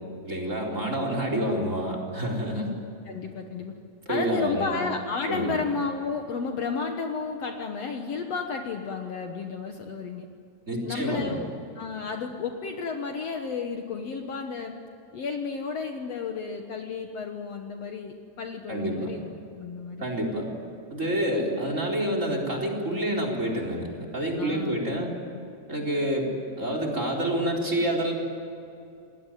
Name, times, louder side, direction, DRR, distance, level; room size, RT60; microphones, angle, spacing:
voice 1, 0.2-2.7 4.1-4.8 5.3-5.5 10.7-11.4 18.7-19.1 20.0-20.5 20.9-25.1 25.7-28.1, right 1 dB, 20° right, 2 dB, 4.4 m, -28 dB
voice 2, 2.5-3.7 4.1-10.3 10.8-11.5 11.7-14.8 15.1-20.1 24.4-25.1 25.3-25.4, left 5 dB, 60° left, 4 dB, 2.2 m, -32 dB
28.5 x 20.0 x 9.3 m, 2.6 s
omnidirectional pair, 3.7 m